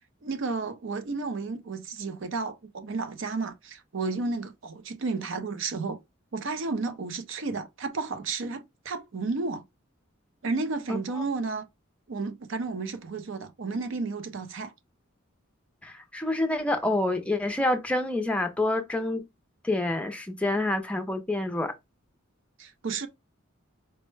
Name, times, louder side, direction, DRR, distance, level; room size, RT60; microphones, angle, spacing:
voice 1, 0.2-6.0 6.3-9.6 10.4-11.7 12.1-14.7 22.6-23.1, right 3 dB, 65° right, 0.5 m, -32 dB
voice 2, 15.8-19.2 19.6-21.7, left 2 dB, 5° left, 0.5 m, -27 dB
4.4 x 2.1 x 3.1 m
head